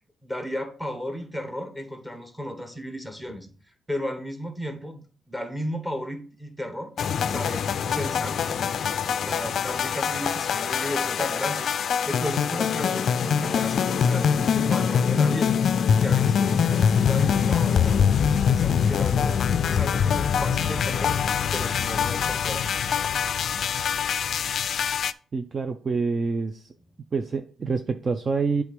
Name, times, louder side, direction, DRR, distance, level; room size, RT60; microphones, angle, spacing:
voice 1, 0.2-6.9 7.3-15.5 15.9-21.2 21.5-22.7, equal, 5° right, 1.3 m, -34 dB
sound 1, 7.0-25.1, left 7 dB, 60° left, 0.3 m, -24 dB
voice 2, 25.3-26.7 27.1-28.6, right 4 dB, 35° right, 0.5 m, -27 dB
7.9 x 3.5 x 5.2 m
cardioid pair, 90°, 0 cm